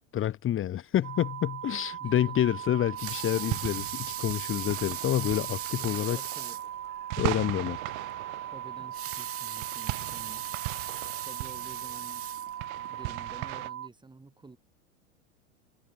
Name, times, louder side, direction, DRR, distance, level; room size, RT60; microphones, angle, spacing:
voice 1, 0.1-6.2 7.2-8.1, left 11 dB, 30° left, 2.0 m, -28 dB
sound 1, 1.0-13.9, right 10 dB, 80° right, 1.3 m, -39 dB
voice 2, 2.0-2.4 6.1-6.6 8.5-10.6 11.2-12.2 12.8-14.6, right 3 dB, 10° right, 6.6 m, -50 dB
Water tap faucet / Sink (filling or washing) / Liquid, 2.8-6.7 7.2-7.3 7.6-7.7 8.8-12.9 13.5-13.6, right 12 dB, 35° right, 2.7 m, -39 dB
sound 2, 2.9-13.7, right 37 dB, 50° right, 2.2 m, -39 dB
hypercardioid pair, 95°, 41 cm